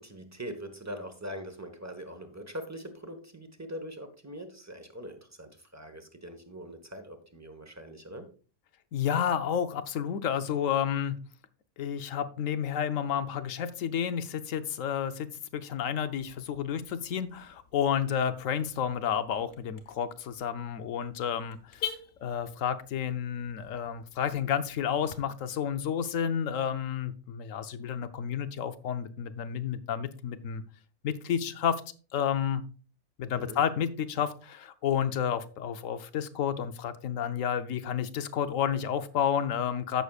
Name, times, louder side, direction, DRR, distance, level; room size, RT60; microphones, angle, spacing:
voice 1, 0.0-8.3 33.4-33.6, equal, 15° right, 7 dB, 1.1 m, -42 dB
voice 2, 8.9-11.2 11.8-15.3 15.5-21.9 22.2-30.6 31.0-31.8 32.1-32.6 33.2-40.0, left 8 dB, 90° left, 11 dB, 1.1 m, -30 dB
Car / Alarm, 16.0-25.2, left 9 dB, 50° left, 1.4 m, -46 dB
15.0 x 6.4 x 2.4 m, 0.38 s
omnidirectional pair, 1.3 m